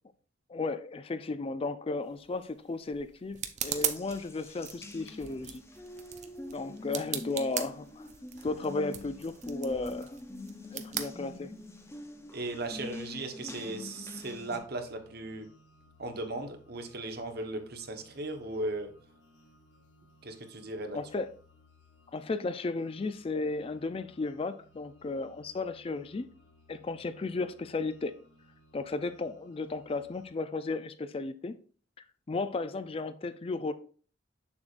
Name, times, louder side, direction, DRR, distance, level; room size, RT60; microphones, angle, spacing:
voice 1, 0.5-5.6 6.5-8.1 8.4-10.2 10.7-11.5 20.9-21.3 22.1-26.3 26.7-28.1 28.7-31.5 32.3-33.7, left 3 dB, 30° left, 0.4 m, -34 dB
sound 1, 2.0-11.9, right 10 dB, 40° right, 0.6 m, -40 dB
Water tap faucet, 3.6-14.6, left 1 dB, 15° left, 0.7 m, -45 dB
voice 2, 12.3-15.5 16.0-18.9 20.2-21.0, right 2 dB, 55° right, 1.0 m, -37 dB
sound 2, 12.4-30.3, left 2 dB, 65° left, 1.5 m, -62 dB
7.0 x 6.7 x 2.5 m
head